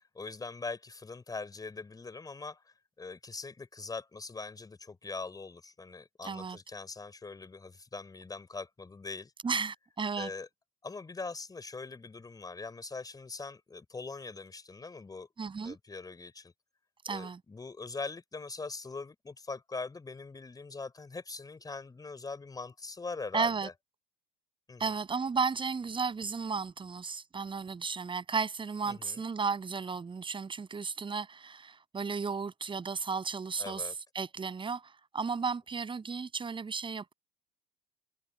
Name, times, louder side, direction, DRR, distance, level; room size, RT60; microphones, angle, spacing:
voice 1, 0.0-9.3 10.2-10.5 10.8-15.3 15.6-16.5 17.1-23.7 24.7-24.9 28.9-29.2 33.6-33.9, left 3 dB, 20° left, 4.7 m, -42 dB
voice 2, 6.2-6.6 9.4-10.3 15.4-15.8 17.0-17.4 23.3-23.7 24.8-37.1, right 5 dB, 25° right, 7.9 m, -34 dB
hypercardioid pair, 70°, 20 cm